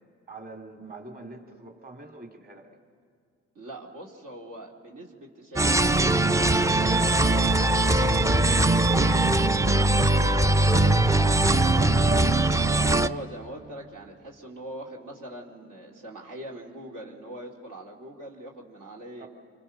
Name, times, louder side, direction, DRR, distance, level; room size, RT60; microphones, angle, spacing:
voice 1, 0.3-2.7 19.2-19.3, right 2 dB, 25° right, 3 dB, 2.8 m, -44 dB
voice 2, 3.5-8.6 9.2-9.5 10.1-19.3, right 1 dB, 65° right, -2 dB, 2.8 m, -42 dB
sound 1, 5.6-13.1, right 2 dB, 10° right, 0.6 m, -21 dB
26.5 x 26.0 x 5.9 m, 2.2 s
hypercardioid pair, 45°, 33 cm